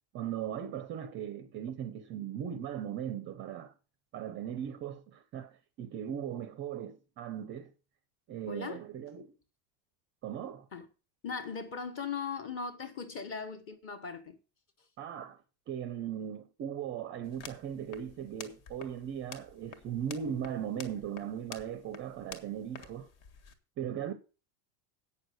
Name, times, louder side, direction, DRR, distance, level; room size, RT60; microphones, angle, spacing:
voice 1, 0.1-3.7 4.1-7.7 8.3-9.3 10.2-10.7 15.0-15.4 15.7-23.1 23.8-24.1, right 9 dB, 25° right, 0.6 m, -38 dB
voice 2, 8.5-8.8 10.7-10.9 11.2-14.4, left 5 dB, 25° left, 1.3 m, -39 dB
sound 1, 17.2-23.5, left 6 dB, 45° left, 1.6 m, -50 dB
8.5 x 6.4 x 7.9 m
cardioid pair, 175°, 48 cm